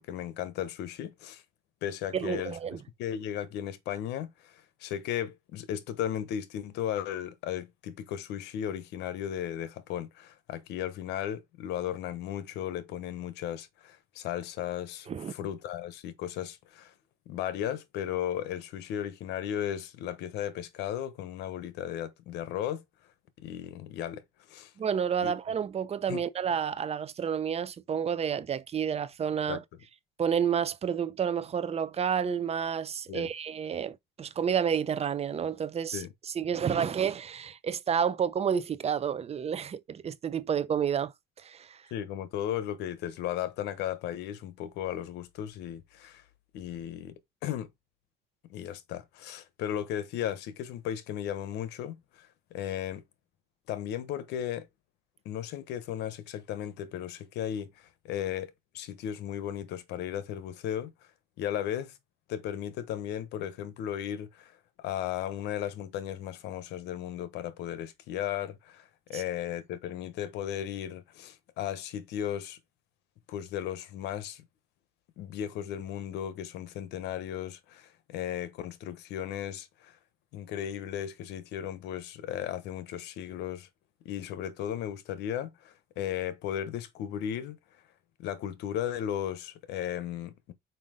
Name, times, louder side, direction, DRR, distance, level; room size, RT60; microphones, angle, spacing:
voice 1, 0.0-1.4 1.8-2.6 3.0-16.9 17.3-22.8 23.4-24.2 24.5-24.7 25.2-25.3 26.1-26.2 29.5-29.6 33.1-33.3 35.9-36.1 41.9-46.2 46.5-47.7 48.5-53.0 53.7-54.7 55.2-60.9 61.4-62.0 62.3-64.5 64.8-72.6 73.3-74.4 75.2-80.0 80.3-83.7 84.0-87.6 88.2-90.5, left 10 dB, 85° left, 1.0 m, -35 dB
voice 2, 2.1-2.8 15.1-15.3 24.8-29.6 30.2-41.1 41.4-41.8 69.1-69.2, right 7 dB, 40° right, 0.8 m, -30 dB
5.7 x 4.9 x 3.7 m
cardioid pair, 110°, 17 cm